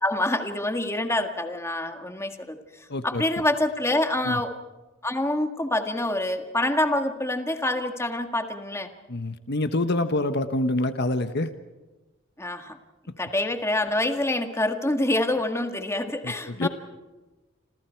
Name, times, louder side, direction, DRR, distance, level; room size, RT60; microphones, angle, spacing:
voice 1, 0.0-2.6 3.0-4.5 5.0-8.9 12.4-12.8 13.2-16.7, left 1 dB, 15° left, 5 dB, 1.8 m, -26 dB
voice 2, 2.9-3.2 4.2-4.4 9.1-11.5 16.2-16.7, left 2 dB, 55° left, 9 dB, 1.3 m, -26 dB
29.5 x 27.5 x 4.7 m, 1.1 s
head